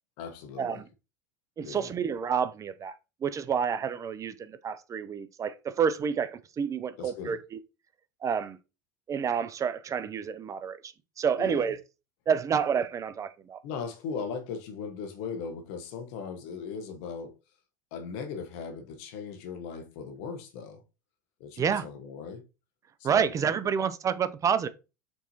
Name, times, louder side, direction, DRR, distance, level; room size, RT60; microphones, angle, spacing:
voice 1, 0.2-0.8 1.6-1.9 7.0-7.4 11.4-11.7 13.6-17.3 17.9-20.8 21.4-22.4 23.0-23.3, left 5 dB, 65° left, 1.1 m, -38 dB
voice 2, 1.6-2.9 3.2-7.6 8.2-8.6 9.1-11.8 12.3-13.6 21.6-21.8 23.0-24.7, right 7 dB, 30° right, 0.5 m, -29 dB
4.5 x 4.1 x 2.8 m
hypercardioid pair, 85°, 11 cm